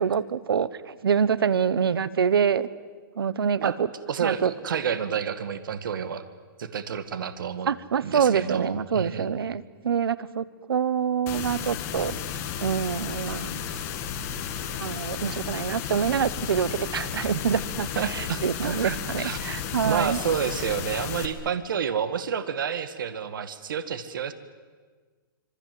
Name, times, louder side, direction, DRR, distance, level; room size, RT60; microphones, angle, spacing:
voice 1, 0.0-2.7 3.2-3.9 4.2-4.5 7.7-12.2 12.6-13.5 14.8-20.2, right 7 dB, 85° right, 18 dB, 1.2 m, -26 dB
voice 2, 4.1-6.2 6.6-7.7 8.0-9.3 18.0-19.4 19.8-24.3, right 7 dB, 65° right, 11 dB, 2.0 m, -29 dB
sound 1, 11.3-21.3, left 8 dB, 20° left, 1.7 m, -33 dB
26.0 x 24.5 x 7.8 m, 1.5 s
hypercardioid pair, 170°, 12 cm